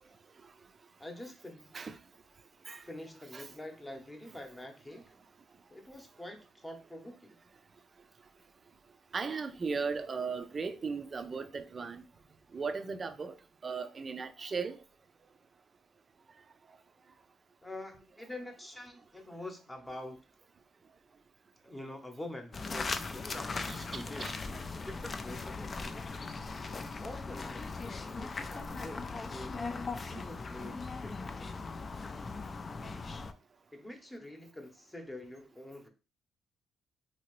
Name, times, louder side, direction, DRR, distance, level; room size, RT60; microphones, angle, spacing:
voice 1, 1.0-1.8 2.7-5.1 5.7-7.4 17.6-20.2 21.6-24.3 24.8-26.1 27.0-29.5 29.9-31.6 33.7-35.9, left 1 dB, 15° left, 0.8 m, -46 dB
voice 2, 9.1-12.0 12.5-13.4 13.6-14.8 23.7-24.4, right 5 dB, 35° right, 0.4 m, -37 dB
sound 1, 22.5-33.3, left 4 dB, 35° left, 0.3 m, -39 dB
2.9 x 2.8 x 3.0 m
cardioid pair, 90°, 0 cm